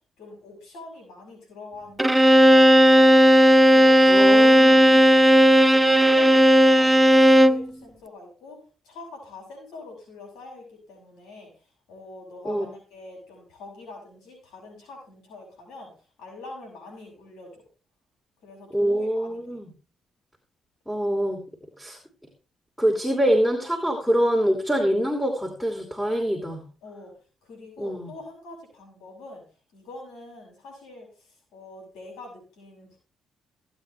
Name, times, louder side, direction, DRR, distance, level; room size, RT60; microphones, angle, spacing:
voice 1, 0.2-3.1 3.6-5.5 5.8-11.5 11.9-15.9 16.2-17.7 18.4-19.6 26.8-27.1 27.4-29.4 29.7-33.0, left 3 dB, 85° left, 1 dB, 7.0 m, -44 dB
Bowed string instrument, 2.0-7.7, equal, 10° right, 0.5 m, -15 dB
voice 2, 4.1-5.0 12.4-12.6 18.7-19.7 20.9-21.4 21.8-22.0 22.8-26.6 27.8-28.1, equal, 5° left, 1 dB, 2.8 m, -25 dB
16.0 x 8.8 x 3.3 m, 0.37 s
cardioid pair, 80°, 0 cm